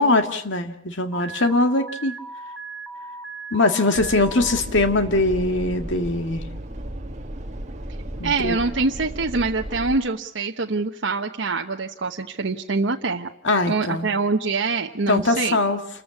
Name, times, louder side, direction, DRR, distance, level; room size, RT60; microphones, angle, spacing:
voice 1, 0.0-2.1 3.5-6.4 8.2-8.6 13.4-14.1 15.1-15.8, left 2 dB, 75° left, 6 dB, 2.0 m, -21 dB
Alarm, 1.1-4.6, right 3 dB, 5° right, 1.9 m, -37 dB
sound 1, 3.9-10.0, right 1 dB, 40° right, 1.9 m, -34 dB
voice 2, 8.2-13.3 13.7-15.6, right 3 dB, 80° right, 2 dB, 1.0 m, -25 dB
28.5 x 15.0 x 8.4 m, 0.70 s
head